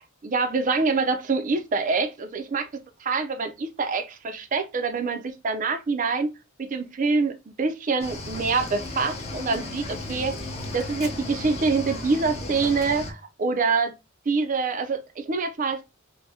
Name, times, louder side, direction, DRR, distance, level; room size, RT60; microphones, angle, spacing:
voice 1, 0.0-2.7 3.0-6.3 6.6-10.4 10.7-13.9 14.3-15.8, right 4 dB, 40° right, 0.4 m, -25 dB
Cricket / Waves surf, 8.0-13.1, left 2 dB, 30° left, 0.6 m, -35 dB
3.3 x 2.1 x 2.7 m
head